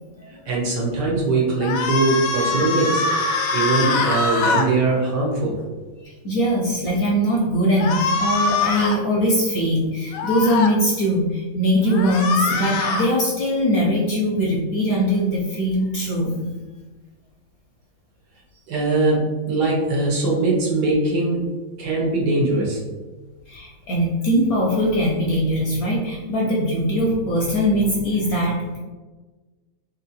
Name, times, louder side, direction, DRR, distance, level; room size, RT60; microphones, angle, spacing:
voice 1, 0.5-3.1 3.5-5.6 18.7-21.5 21.8-22.8, right 2 dB, 65° right, -3 dB, 1.5 m, -21 dB
sound 1, 1.6-4.7 7.8-9.0 10.1-10.7 11.9-13.1, left 3 dB, 85° left, 1.4 m, -23 dB
voice 2, 6.0-16.4 23.5-28.8, equal, 60° left, -3 dB, 1.0 m, -21 dB
3.6 x 2.7 x 4.1 m, 1.3 s
omnidirectional pair, 2.1 m